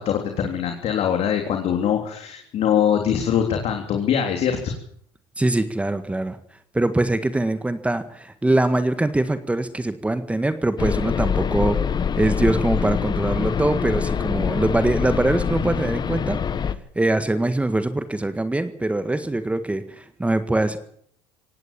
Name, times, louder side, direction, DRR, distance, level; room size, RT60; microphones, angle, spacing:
voice 1, 0.0-4.7, left 8 dB, 50° left, 4 dB, 3.5 m, -23 dB
voice 2, 5.4-6.4 6.7-11.8 12.2-16.4 17.0-20.8, right 2 dB, 10° right, 10 dB, 1.7 m, -23 dB
sound 1, 10.8-16.7, left 7 dB, 30° left, 1.4 m, -24 dB
18.0 x 17.0 x 8.6 m, 0.64 s
hypercardioid pair, 85°, 14 cm